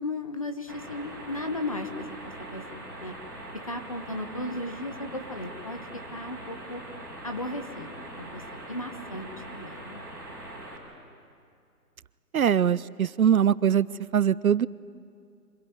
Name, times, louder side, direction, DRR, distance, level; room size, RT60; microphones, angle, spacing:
voice 1, 0.0-3.1 3.6-5.8 6.1-6.8 7.2-8.4 8.7-10.0, left 2 dB, 20° left, 7 dB, 0.8 m, -36 dB
sound 1, 0.7-10.8, right 1 dB, 5° left, 3.2 m, -42 dB
voice 2, 12.3-13.9 14.1-14.7, right 8 dB, 60° right, 19 dB, 0.5 m, -22 dB
25.0 x 17.5 x 9.5 m, 2.4 s
hypercardioid pair, 165°, 48 cm